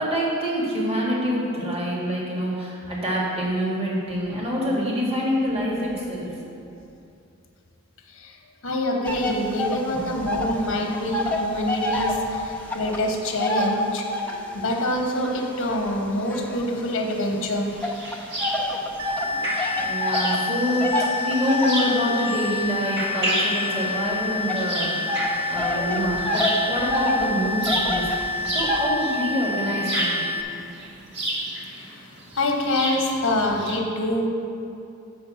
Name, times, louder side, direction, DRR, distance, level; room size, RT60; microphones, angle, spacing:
voice 1, 0.0-6.4 9.9-10.1 19.8-30.2, equal, 30° right, -5 dB, 1.6 m, -26 dB
voice 2, 8.6-14.1 14.5-17.7 31.8-32.1 32.3-34.3, left 1 dB, 65° left, 1 dB, 1.1 m, -26 dB
sound 1, 9.0-10.6 10.9-14.5 15.1-17.2 17.8-28.9, left 1 dB, 5° left, 0.6 m, -28 dB
sound 2, 17.1-33.7, right 1 dB, 55° right, 1.7 m, -31 dB
sound 3, 19.0-30.4, left 4 dB, 85° right, 0.5 m, -29 dB
7.8 x 5.2 x 5.8 m, 2.7 s
head